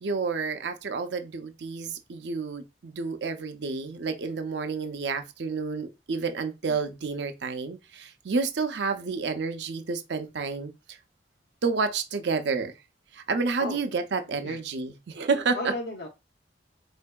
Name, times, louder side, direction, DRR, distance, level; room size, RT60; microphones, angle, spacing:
voice 1, 0.0-10.7 11.6-12.7 13.1-15.6, right 4 dB, 65° right, 0.5 m, -30 dB
voice 2, 14.3-14.6 15.5-16.1, left 1 dB, 65° left, 0.7 m, -35 dB
4.4 x 2.6 x 2.2 m
head